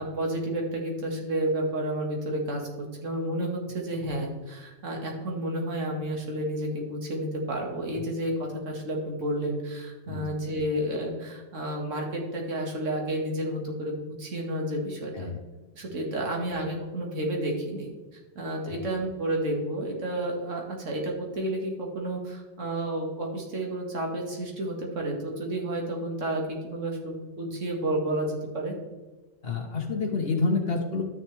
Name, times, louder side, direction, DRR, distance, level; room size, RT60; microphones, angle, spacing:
voice 1, 0.0-2.7 3.0-15.3 15.7-17.9 18.4-28.7, right 1 dB, 45° right, 0 dB, 2.0 m, -31 dB
voice 2, 29.4-31.0, left 4 dB, 40° left, 1 dB, 1.1 m, -28 dB
12.0 x 6.6 x 3.3 m, 1.2 s
omnidirectional pair, 1.9 m